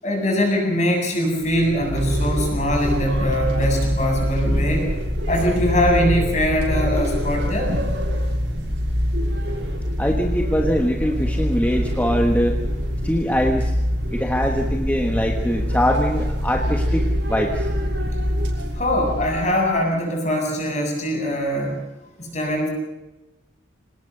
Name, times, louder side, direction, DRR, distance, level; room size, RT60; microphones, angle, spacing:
voice 1, 0.0-4.9 5.3-7.7 18.7-21.8 22.2-22.7, equal, 35° left, 1 dB, 7.5 m, -22 dB
sound 1, 1.4-19.6, equal, 70° right, 6.3 m, -24 dB
voice 2, 10.0-12.6 13.0-13.7 14.1-17.7, equal, 10° left, 3 dB, 1.3 m, -22 dB
26.0 x 19.0 x 6.7 m, 1.0 s
head